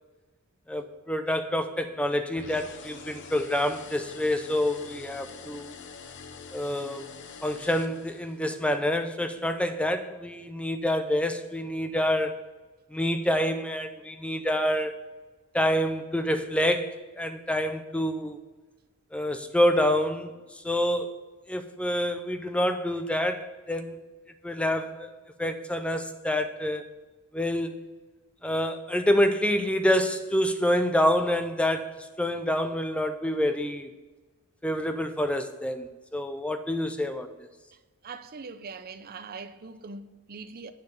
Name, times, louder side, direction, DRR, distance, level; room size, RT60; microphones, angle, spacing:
voice 1, 0.7-5.7 6.5-7.1 7.4-12.4 12.9-14.9 15.5-18.4 19.1-21.1 21.5-24.0 24.4-25.1 25.4-26.8 27.3-27.9 28.4-33.9 34.6-37.3, left 1 dB, 5° left, 0.5 m, -27 dB
sound 1, 2.4-8.5, left 5 dB, 55° left, 0.8 m, -45 dB
voice 2, 38.0-40.7, right 4 dB, 45° right, 0.6 m, -41 dB
9.4 x 4.7 x 6.9 m
head